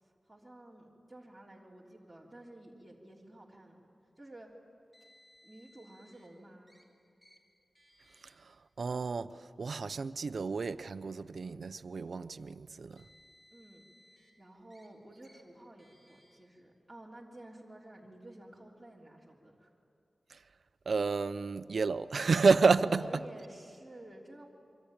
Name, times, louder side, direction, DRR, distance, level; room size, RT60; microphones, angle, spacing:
voice 1, 0.0-3.8 4.2-4.5 5.4-6.8 13.5-13.8 14.4-19.7 22.8-24.5, right 1 dB, 5° right, 3.4 m, -52 dB
Car, 4.9-6.3 6.7-6.8 7.2-7.4 7.8-8.3 9.2-9.3 10.3-10.4 12.7-14.3 14.7-14.9 15.2-15.4 15.8-16.4, equal, 20° left, 4.5 m, -63 dB
voice 2, 8.8-9.3 9.6-13.0 20.9-23.0, right 4 dB, 65° right, 0.7 m, -29 dB
27.5 x 24.0 x 8.9 m
wide cardioid pair, 100°, 0 cm